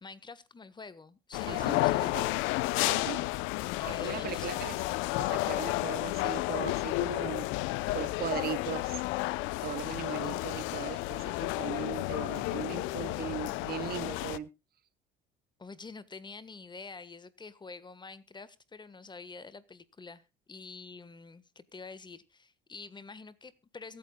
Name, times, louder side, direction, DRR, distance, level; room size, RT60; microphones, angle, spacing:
voice 1, 0.0-2.4 3.8-4.9 15.6-24.0, left 4 dB, 20° left, 15 dB, 1.4 m, -47 dB
sound 1, 1.3-14.4, left 19 dB, 75° left, 0.7 m, -32 dB
voice 2, 1.5-2.3 2.9-3.2 3.9-4.8 5.2-9.0 9.6-14.5, right 10 dB, 50° right, 17 dB, 1.1 m, -39 dB
23.0 x 9.0 x 2.3 m, 0.27 s
supercardioid pair, 90°, 21 cm